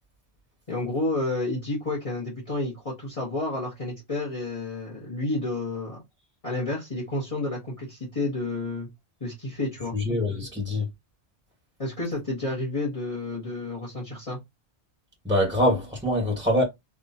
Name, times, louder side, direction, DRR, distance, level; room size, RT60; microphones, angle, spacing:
voice 1, 0.7-6.0 6.4-8.9 9.2-10.0 11.8-14.4, left 2 dB, 30° left, 1.4 m, -30 dB
voice 2, 9.9-10.8 15.2-16.6, left 1 dB, 5° right, 1.3 m, -24 dB
3.6 x 3.0 x 2.8 m
omnidirectional pair, 1.1 m